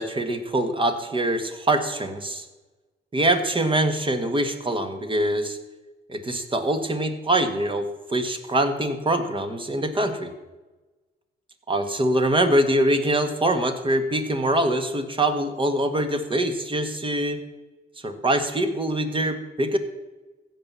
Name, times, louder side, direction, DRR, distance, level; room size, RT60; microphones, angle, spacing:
voice 1, 0.0-2.4 3.1-5.6 6.1-10.3 11.7-17.4 18.0-19.8, right 1 dB, 25° right, 7 dB, 1.7 m, -24 dB
15.0 x 5.6 x 7.5 m, 1.2 s
cardioid pair, 90°, 20 cm